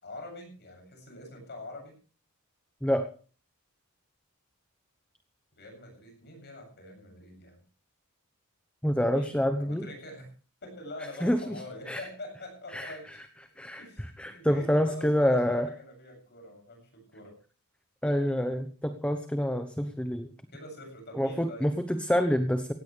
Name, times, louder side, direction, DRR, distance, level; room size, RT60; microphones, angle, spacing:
voice 1, 0.0-2.0 5.6-7.6 9.1-9.3 9.6-10.3 10.6-13.1 13.8-17.3 20.5-21.7, left 1 dB, 50° left, 3 dB, 7.6 m, -45 dB
voice 2, 8.8-9.9 11.2-11.6 11.9-12.0 12.7-13.2 13.6-15.7 18.0-20.3 21.1-22.7, equal, 5° left, 8 dB, 0.9 m, -27 dB
17.5 x 16.5 x 3.4 m, 0.41 s
head